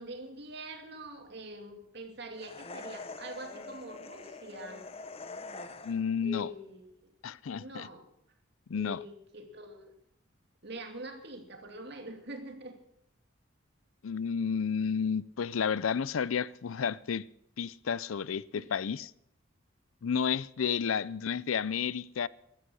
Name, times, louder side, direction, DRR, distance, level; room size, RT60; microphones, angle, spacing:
voice 1, 0.0-4.8 6.2-7.1 7.5-8.1 8.7-9.9 10.6-12.8 18.6-18.7, right 1 dB, 55° right, 2.6 m, -44 dB
sound 1, 2.4-6.2, left 3 dB, 30° left, 0.8 m, -44 dB
voice 2, 5.8-6.5 7.2-7.9 8.7-9.0 14.0-17.2 17.6-19.1 20.0-22.3, left 6 dB, 80° left, 0.5 m, -31 dB
14.5 x 13.5 x 6.4 m
head